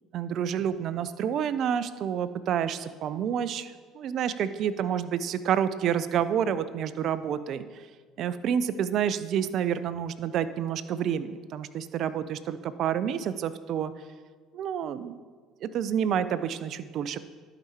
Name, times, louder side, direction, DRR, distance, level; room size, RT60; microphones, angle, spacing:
voice 1, 0.1-7.6 8.2-13.9 14.5-15.2 15.6-17.2, right 8 dB, 60° right, 14 dB, 0.5 m, -29 dB
11.5 x 5.0 x 4.3 m, 1.5 s
hypercardioid pair, 70°, 0 cm